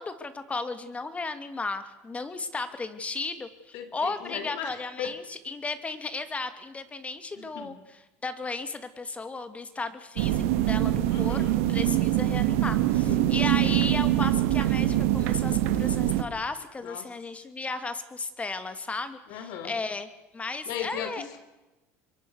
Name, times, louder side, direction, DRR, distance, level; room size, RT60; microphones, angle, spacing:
voice 1, 0.0-7.7 8.2-20.1 20.3-21.2, left 3 dB, 20° left, 10 dB, 2.8 m, -35 dB
voice 2, 3.7-5.1 7.4-7.8 11.1-11.6 13.0-13.4 16.8-17.1 19.3-19.8 20.7-21.4, left 8 dB, 70° left, 9 dB, 3.9 m, -37 dB
sound 1, 10.2-16.2, right 14 dB, 85° right, 2.0 m, -24 dB
26.0 x 23.0 x 6.6 m, 1.1 s
supercardioid pair, 105°, 7 cm